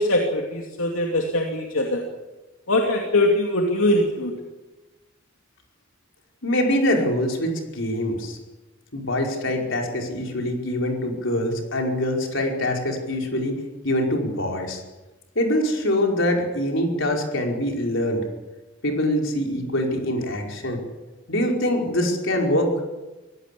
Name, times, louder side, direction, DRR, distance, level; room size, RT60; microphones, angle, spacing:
voice 1, 0.0-2.0 2.7-4.4, left 1 dB, 85° left, 1 dB, 2.7 m, -22 dB
voice 2, 6.4-8.4 8.9-13.6 13.8-14.8 15.4-18.2 18.8-20.8 21.3-22.7, left 1 dB, 65° left, 1 dB, 5.2 m, -24 dB
24.5 x 17.5 x 8.5 m, 1.1 s
head